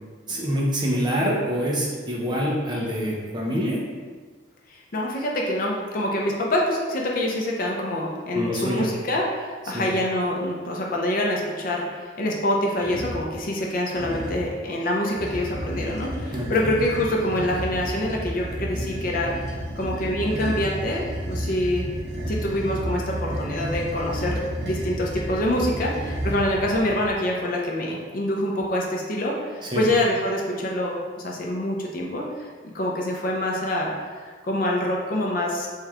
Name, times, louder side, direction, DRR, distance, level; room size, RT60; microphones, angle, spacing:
voice 1, 0.3-3.8 8.3-8.9 9.7-9.9 16.3-16.7 29.6-29.8, equal, 25° right, -3 dB, 0.6 m, -26 dB
voice 2, 4.7-21.9 22.3-32.3 32.7-33.9 34.2-35.7, left 1 dB, 50° left, -1 dB, 0.5 m, -26 dB
sound 1, 12.8-13.3 13.9-14.5 15.1-27.1, equal, 60° right, 0.7 m, -31 dB
3.2 x 3.0 x 3.6 m, 1.5 s
head